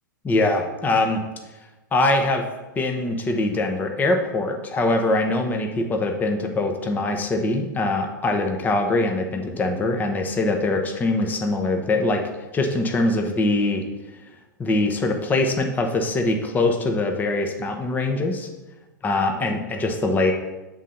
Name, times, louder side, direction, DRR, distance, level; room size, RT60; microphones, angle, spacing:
voice 1, 0.2-1.2 1.9-2.4 2.8-12.2 12.5-13.8 14.6-18.5 19.0-20.3, left 2 dB, 15° left, 4 dB, 0.8 m, -23 dB
7.2 x 3.9 x 5.7 m, 1.1 s
hypercardioid pair, 110°, 10 cm